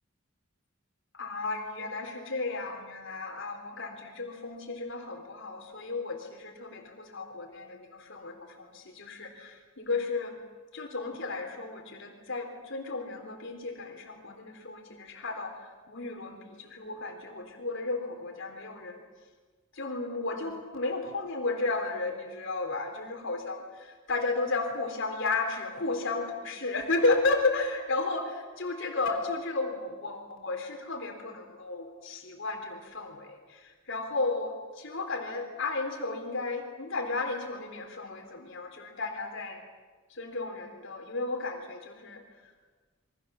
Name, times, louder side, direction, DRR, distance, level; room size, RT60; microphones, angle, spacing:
voice 1, 1.1-10.4 10.7-19.0 19.7-39.6 40.1-42.5, left 3 dB, 65° left, 3 dB, 3.7 m, -33 dB
27.5 x 23.5 x 7.1 m, 1.4 s
head